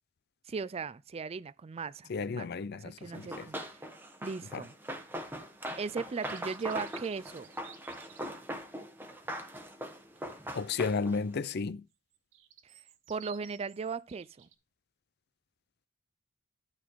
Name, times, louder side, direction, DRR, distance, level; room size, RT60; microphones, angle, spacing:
voice 1, 0.5-2.5 2.8-3.8 4.2-4.7 5.8-7.5 13.1-14.5, right 5 dB, 30° right, 0.4 m, -37 dB
voice 2, 2.1-3.5 4.5-4.6 10.5-11.8, left 4 dB, 55° left, 0.5 m, -33 dB
Run, 3.1-11.3, equal, 10° right, 1.1 m, -41 dB
sound 1, 6.1-8.3 11.9-14.5, right 11 dB, 70° right, 1.1 m, -55 dB
12.0 x 4.2 x 4.7 m
head